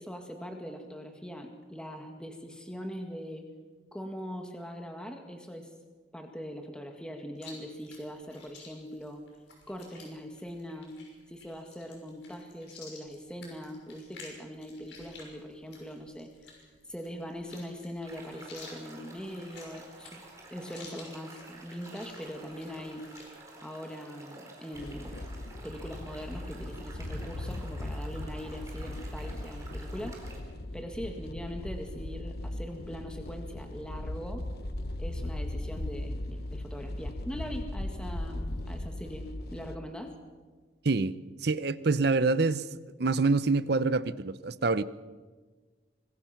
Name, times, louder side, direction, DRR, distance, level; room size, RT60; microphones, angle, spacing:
voice 1, 0.0-3.5 3.9-5.7 6.1-9.2 9.7-11.0 11.3-16.3 16.9-20.2 20.5-23.0 23.6-25.1 25.6-30.2 30.7-34.4 35.0-40.1, equal, 5° left, 3 dB, 1.9 m, -41 dB
Chewing mastication, 7.3-23.3, left 4 dB, 70° left, 6.4 m, -52 dB
sound 1, 18.0-30.4, right 2 dB, 15° right, 4.2 m, -50 dB
sound 2, 24.7-39.8, left 1 dB, 55° left, 1.0 m, -38 dB
voice 2, 41.4-42.7 43.0-44.8, right 3 dB, 55° right, 15 dB, 0.7 m, -26 dB
25.5 x 20.5 x 5.9 m, 1.4 s
head